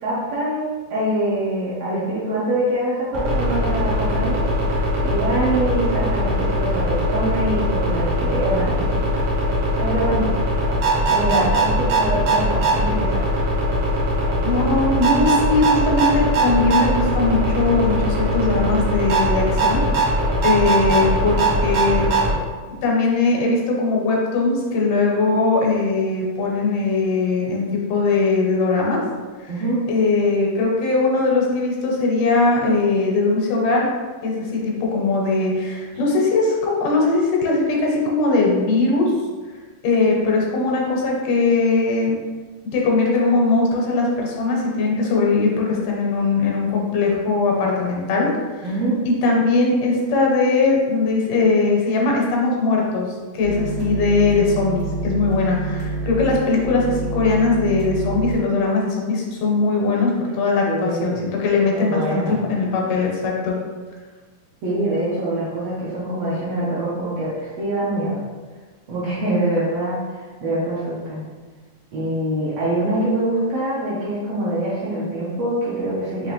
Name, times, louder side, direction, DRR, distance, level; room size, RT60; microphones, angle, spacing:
voice 1, 0.0-9.1 9.8-10.2 11.1-13.2 29.5-29.8 48.6-49.0 60.7-61.2 61.7-62.4 64.6-68.2 68.9-71.2 71.9-76.3, right 1 dB, 70° right, -8 dB, 1.6 m, -24 dB
sound 1, 3.1-22.4, right 1 dB, 85° right, 1.1 m, -21 dB
voice 2, 14.4-20.1 20.4-22.1 22.8-29.0 29.4-29.5 29.9-33.9 34.2-39.1 39.8-42.2 42.7-48.3 48.6-48.7 49.1-53.1 53.3-63.6, left 3 dB, 80° left, -2 dB, 2.3 m, -20 dB
sound 2, 53.4-58.4, right 2 dB, 45° right, 0.7 m, -28 dB
5.6 x 2.9 x 3.0 m, 1.4 s
omnidirectional pair, 3.7 m